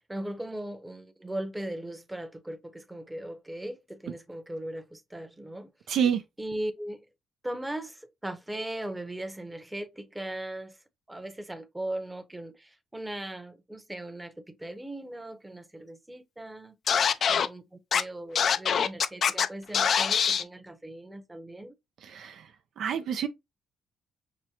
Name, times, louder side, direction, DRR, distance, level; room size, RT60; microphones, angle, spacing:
voice 1, 0.1-5.7 6.4-7.1 7.4-10.8 11.1-16.7 17.3-21.7, right 1 dB, 10° right, 0.8 m, -38 dB
voice 2, 5.9-6.2 22.0-22.4 22.8-23.3, right 8 dB, 70° right, 0.5 m, -27 dB
Scratching (performance technique), 16.9-17.5 17.9-18.0 18.4-19.5 19.7-20.4, left 7 dB, 55° left, 0.4 m, -23 dB
6.0 x 2.1 x 2.9 m
cardioid pair, 90°, 0 cm